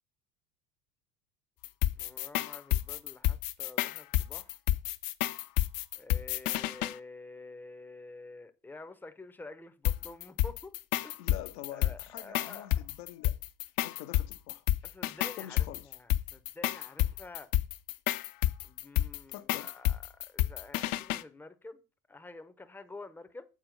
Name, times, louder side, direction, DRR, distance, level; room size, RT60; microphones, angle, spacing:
sound 1, 1.6-7.0 9.9-21.2, left 14 dB, 45° left, 0.6 m, -30 dB
voice 1, 2.0-4.6 6.0-10.8 11.0-11.1 11.7-12.7 14.8-17.5 18.6-21.8 22.1-23.5, left 3 dB, 5° left, 0.6 m, -49 dB
voice 2, 11.2-13.4 13.7-14.6 15.4-15.9 19.3-19.7, left 13 dB, 70° left, 0.8 m, -45 dB
7.6 x 4.3 x 5.2 m
hypercardioid pair, 80°, 47 cm